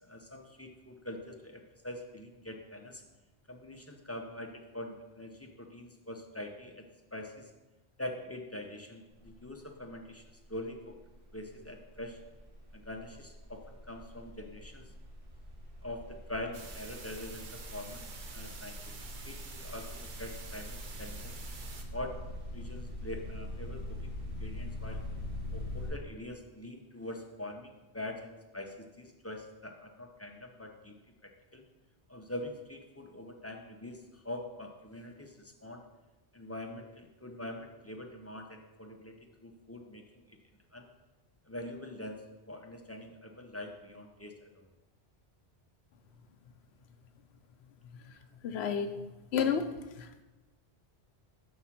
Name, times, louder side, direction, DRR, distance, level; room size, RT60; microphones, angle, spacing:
voice 1, 0.0-3.0 3.5-6.8 7.1-7.5 8.0-10.2 10.5-10.9 11.3-12.2 12.7-14.9 15.8-18.9 19.2-21.4 21.9-22.2 22.5-25.1 25.5-30.9 31.2-31.6 32.1-35.8 36.3-39.2 39.4-40.4 40.7-40.9 41.5-44.7, left 1 dB, 20° left, 2 dB, 0.5 m, -44 dB
sound 1, 9.1-9.5 9.7-25.9, left 1 dB, 70° right, 3.3 m, -43 dB
sound 2, 16.5-21.8, right 4 dB, 50° right, 0.8 m, -48 dB
voice 2, 48.4-48.9 49.3-49.6 50.0-50.2, left 7 dB, 75° left, 8 dB, 0.8 m, -30 dB
6.2 x 4.6 x 5.8 m, 1.1 s
omnidirectional pair, 1.1 m